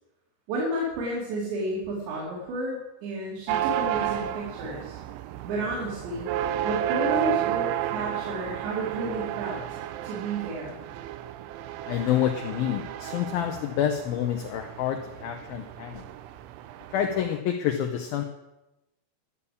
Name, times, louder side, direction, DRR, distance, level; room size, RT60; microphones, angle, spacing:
voice 1, 0.5-5.0 5.4-10.8, right 1 dB, 70° right, -4 dB, 4.6 m, -32 dB
sound 1, 3.5-17.4, right 12 dB, 85° right, 3.1 m, -32 dB
voice 2, 11.9-16.1 16.9-18.2, left 10 dB, 85° left, 4 dB, 2.1 m, -28 dB
12.5 x 7.1 x 8.4 m, 0.96 s
omnidirectional pair, 5.4 m